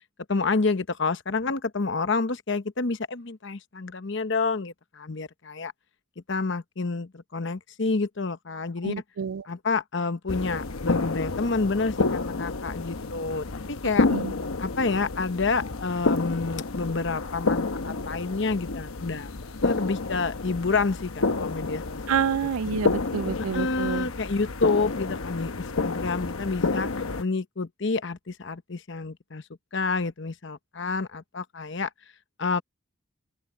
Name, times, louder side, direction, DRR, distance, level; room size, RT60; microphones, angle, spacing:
voice 1, 0.3-5.7 6.3-8.9 9.5-14.1 14.6-19.3 19.6-22.2 23.5-26.9 27.2-29.4 29.7-31.9 32.4-32.6, left 4 dB, 55° left, 0.9 m, -28 dB
voice 2, 8.8-9.5 14.1-14.3 22.1-24.1, right 7 dB, 80° right, 0.4 m, -28 dB
sound 1, 10.3-27.2, left 3 dB, 80° left, 1.0 m, -29 dB
open air
head